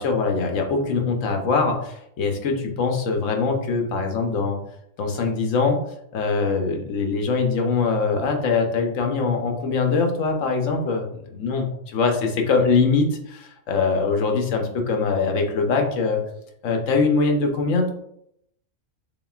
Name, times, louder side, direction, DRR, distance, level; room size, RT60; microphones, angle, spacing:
voice 1, 0.0-4.6 5.0-5.8 6.1-11.0 11.3-11.7 11.9-16.2 16.6-17.9, left 4 dB, 75° left, 3 dB, 1.1 m, -22 dB
4.0 x 3.8 x 2.3 m, 0.75 s
omnidirectional pair, 1.3 m